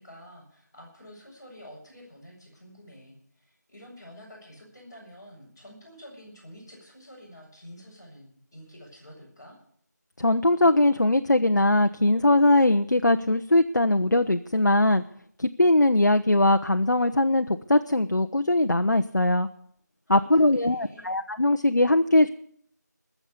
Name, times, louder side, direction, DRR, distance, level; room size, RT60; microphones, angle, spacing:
voice 1, 0.0-9.6 20.1-21.1, equal, 10° left, -11 dB, 5.7 m, -48 dB
voice 2, 10.2-15.0 15.4-19.5 20.1-22.3, left 1 dB, 80° left, 7 dB, 0.9 m, -21 dB
20.5 x 7.3 x 8.3 m, 0.65 s
figure-of-eight pair, 175°, 10 cm